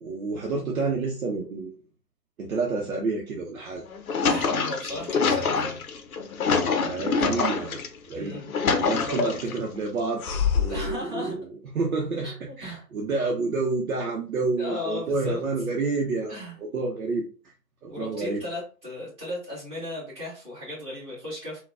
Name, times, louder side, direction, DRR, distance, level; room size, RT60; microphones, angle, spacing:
voice 1, 0.0-1.7 2.4-3.8 6.8-7.8 8.1-8.4 8.8-10.2 10.5-17.2 17.8-18.4, right 3 dB, 60° right, -1 dB, 0.8 m, -29 dB
sound 1, 3.8-7.9 8.3-9.6 10.2-10.9, left 5 dB, 60° left, 0.6 m, -25 dB
voice 2, 4.3-5.8 8.1-8.5 8.8-9.5 10.7-11.3 12.2-12.8 14.6-15.4 16.3-16.6 17.9-21.6, left 1 dB, 10° right, -8 dB, 1.6 m, -36 dB
3.8 x 2.3 x 2.3 m, 0.36 s
figure-of-eight pair, 140°, 49 cm